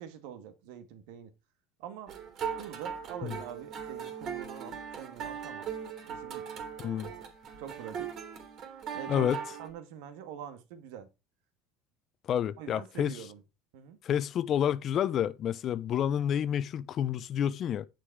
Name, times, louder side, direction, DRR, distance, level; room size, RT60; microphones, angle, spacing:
voice 1, 0.0-1.3 1.8-2.1 2.6-5.7 6.1-6.4 7.6-8.1 8.9-9.3 9.6-11.1 12.6-13.4 13.7-14.0, right 9 dB, 75° right, 2.1 m, -44 dB
sound 1, 2.1-9.7, right 7 dB, 55° right, 3.2 m, -39 dB
voice 2, 6.8-7.1 9.1-9.4 12.3-13.2 14.0-17.9, left 9 dB, 50° left, 0.8 m, -29 dB
9.8 x 6.5 x 4.8 m
hypercardioid pair, 80°, 0 cm